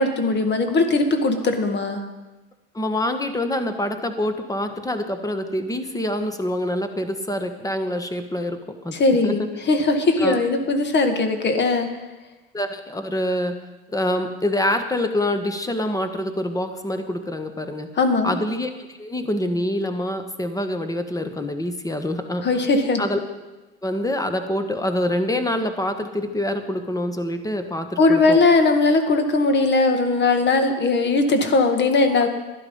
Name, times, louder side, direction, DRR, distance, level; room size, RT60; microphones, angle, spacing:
voice 1, 0.0-2.0 8.9-11.9 18.0-18.3 22.4-23.0 28.0-32.3, left 3 dB, 35° left, 6 dB, 1.8 m, -19 dB
voice 2, 2.7-9.0 9.2-9.3 10.2-10.4 12.5-13.6 13.9-17.9 18.2-22.4 23.0-23.2 23.8-28.4, left 1 dB, 10° left, 8 dB, 1.4 m, -26 dB
11.5 x 11.0 x 5.5 m, 1.1 s
hypercardioid pair, 85°, 30 cm